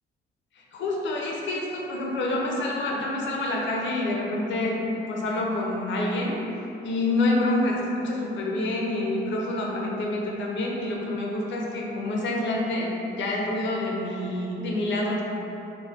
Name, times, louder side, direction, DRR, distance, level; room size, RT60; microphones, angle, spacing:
voice 1, 0.6-4.8 5.1-6.4 6.8-15.2, left 2 dB, 70° left, -2 dB, 0.6 m, -27 dB
2.9 x 2.1 x 3.4 m, 3.0 s
cardioid pair, 90°, 20 cm